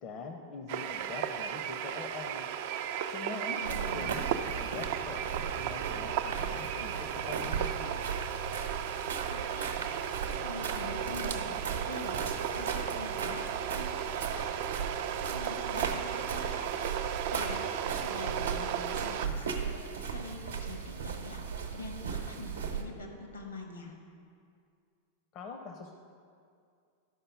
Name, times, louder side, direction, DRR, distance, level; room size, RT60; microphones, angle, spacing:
voice 1, 0.0-2.5 3.0-4.2 4.5-8.0 25.3-25.9, left 4 dB, 35° left, 4 dB, 0.7 m, -43 dB
sound 1, 0.7-19.3, right 9 dB, 50° right, 0.4 m, -35 dB
voice 2, 3.5-4.2 9.3-10.0 10.3-12.2 12.5-17.0 17.3-21.4 21.7-23.9, left 2 dB, 75° left, 2 dB, 1.6 m, -45 dB
sound 2, 3.6-22.8, right 6 dB, 70° right, 0.9 m, -37 dB
12.0 x 5.4 x 5.5 m, 2.3 s
figure-of-eight pair, 90°, 0 cm